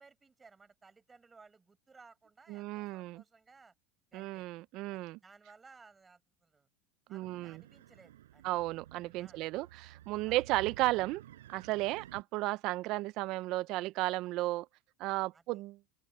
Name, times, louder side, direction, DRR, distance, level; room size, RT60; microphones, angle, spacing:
voice 1, 0.0-3.7 4.1-4.5 4.9-6.7 7.1-8.5 9.2-9.4 10.2-10.4 11.9-12.1 15.3-15.6, right 4 dB, 20° right, 6.9 m, -60 dB
voice 2, 2.5-3.2 4.1-5.2 7.1-7.6 8.4-11.2 11.5-14.7 15.0-15.8, right 19 dB, 60° right, 0.7 m, -34 dB
sound 1, 7.2-12.2, right 13 dB, 90° right, 7.9 m, -53 dB
open air
supercardioid pair, 105°, 0 cm